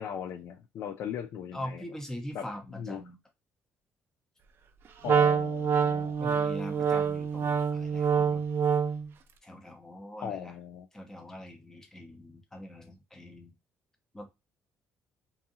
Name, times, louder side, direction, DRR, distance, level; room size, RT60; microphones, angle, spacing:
voice 1, 0.0-1.8 2.3-2.5 2.8-3.0 5.0-6.3 10.2-10.9, left 8 dB, 65° left, 0.3 m, -38 dB
voice 2, 1.5-3.2 6.2-8.4 9.4-10.5 10.9-13.6 14.1-14.3, equal, 10° left, 0.7 m, -42 dB
Wind instrument woodwind instrument, 5.0-9.1, right 7 dB, 55° right, 0.3 m, -26 dB
2.7 x 2.3 x 2.7 m
cardioid pair, 105°, 5 cm